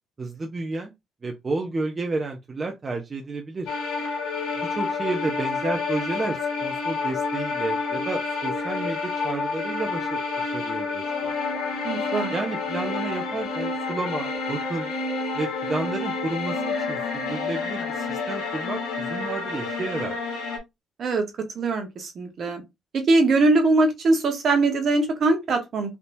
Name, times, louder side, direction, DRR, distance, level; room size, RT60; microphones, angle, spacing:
voice 1, 0.2-0.9 1.2-3.7 4.6-11.3 12.3-14.9 15.3-20.2, right 3 dB, 35° right, 0.7 m, -31 dB
sound 1, 3.7-20.6, left 4 dB, 75° left, 1.1 m, -29 dB
voice 2, 11.8-12.3 21.0-21.3 21.5-22.6 22.9-26.0, right 2 dB, 55° right, 1.1 m, -21 dB
3.5 x 2.7 x 2.6 m
hypercardioid pair, 45°, 0 cm